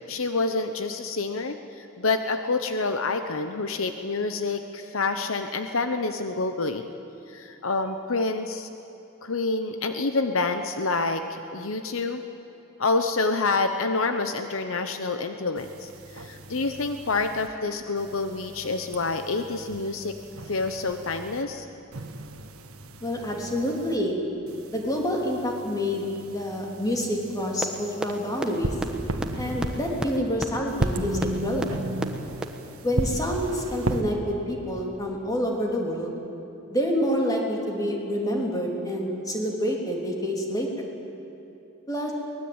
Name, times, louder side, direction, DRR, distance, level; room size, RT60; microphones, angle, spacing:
voice 1, 0.0-6.9 7.3-8.7 9.2-12.2 12.8-20.2 20.5-21.7, left 3 dB, 65° left, 7 dB, 1.0 m, -27 dB
sound 1, 15.6-17.5 18.0-21.4 21.9-24.0 24.5-30.2 30.7-34.0, right 1 dB, 80° right, 1.5 m, -35 dB
voice 2, 23.0-24.2 24.7-26.1 26.3-28.8 29.4-31.8 32.8-36.1 36.7-40.8 41.9-42.1, equal, 15° left, -1 dB, 3.4 m, -27 dB
sound 2, 27.6-27.7 28.0-28.1 28.4-28.5 28.8-28.9 29.2-29.3 29.6-29.7 30.0-30.1 30.4-30.5 30.8-30.9 31.2-31.3 31.6-31.7 32.0-32.1 32.4-32.5, right 1 dB, 5° right, 1.3 m, -27 dB
23.0 x 20.0 x 8.9 m, 3.0 s
head